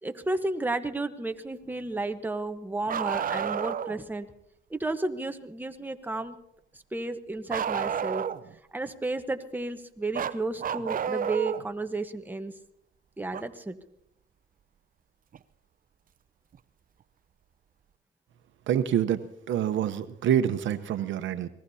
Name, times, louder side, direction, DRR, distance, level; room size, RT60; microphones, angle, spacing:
voice 1, 0.0-4.3 4.7-6.4 6.7-8.3 8.7-12.5 13.2-13.8 21.0-21.1, right 2 dB, 10° right, 7 dB, 1.1 m, -32 dB
Bark, 2.9-4.0 7.5-8.5 10.1-11.7 13.3-13.4 15.3-15.4 16.5-16.6, right 8 dB, 45° right, 0.6 m, -30 dB
voice 2, 18.7-19.2 19.5-21.5, right 10 dB, 70° right, 11 dB, 0.9 m, -26 dB
27.0 x 19.5 x 2.8 m, 0.82 s
cardioid pair, 90°, 20 cm